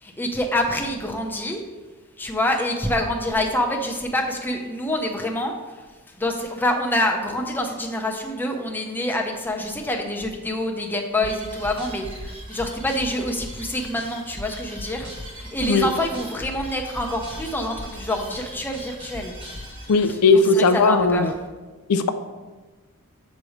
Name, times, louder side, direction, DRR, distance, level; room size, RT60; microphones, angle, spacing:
voice 1, 0.0-1.6 2.2-5.9 6.2-15.1 15.3-19.4 19.9-21.3, left 1 dB, 10° left, 2 dB, 0.6 m, -26 dB
sound 1, 11.2-20.0, equal, 25° right, 1.2 m, -38 dB
voice 2, 19.9-21.3 21.9-22.1, left 3 dB, 85° left, 9 dB, 0.4 m, -17 dB
7.4 x 3.1 x 4.8 m, 1.3 s
head